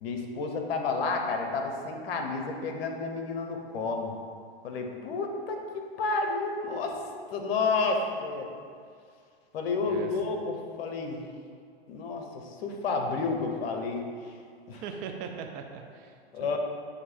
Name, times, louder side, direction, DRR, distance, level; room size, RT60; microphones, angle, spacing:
voice 1, 0.0-4.1 4.6-7.0 7.3-8.5 9.5-11.2 11.9-14.3 14.7-14.8 16.3-16.6, left 4 dB, 65° left, 3 dB, 0.9 m, -31 dB
voice 2, 14.7-16.6, right 6 dB, 30° right, 3 dB, 0.4 m, -40 dB
7.8 x 2.8 x 4.3 m, 2.2 s
hypercardioid pair, 110°, 32 cm